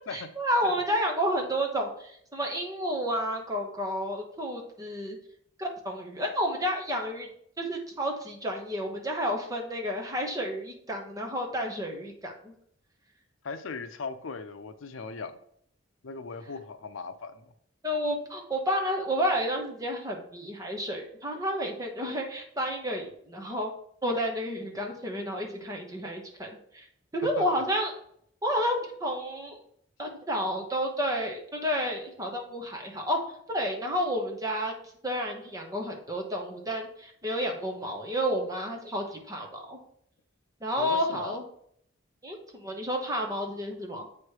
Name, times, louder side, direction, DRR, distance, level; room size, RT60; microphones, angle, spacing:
voice 1, 0.1-5.2 5.6-7.3 7.6-12.5 17.8-23.7 24.0-26.8 27.1-27.9 28.4-29.6 30.0-33.2 33.5-34.7 35.0-39.8 40.6-41.4 42.2-44.1, equal, 20° right, 1 dB, 1.1 m, -31 dB
voice 2, 13.4-15.4 16.0-17.5 27.4-27.5 40.8-41.4, left 4 dB, 85° left, 10 dB, 0.6 m, -38 dB
8.1 x 3.2 x 4.7 m, 0.67 s
head